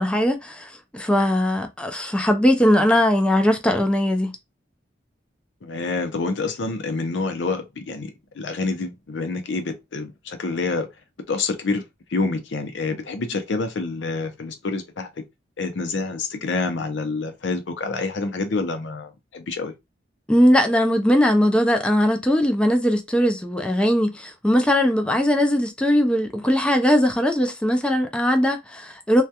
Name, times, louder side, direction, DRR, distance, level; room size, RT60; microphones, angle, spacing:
voice 1, 0.0-4.3 20.3-29.2, equal, 5° left, 0.4 m, -20 dB
voice 2, 5.6-10.9 11.3-11.8 12.1-15.1 15.6-19.7, left 3 dB, 80° left, 0.6 m, -27 dB
2.3 x 2.2 x 2.7 m
head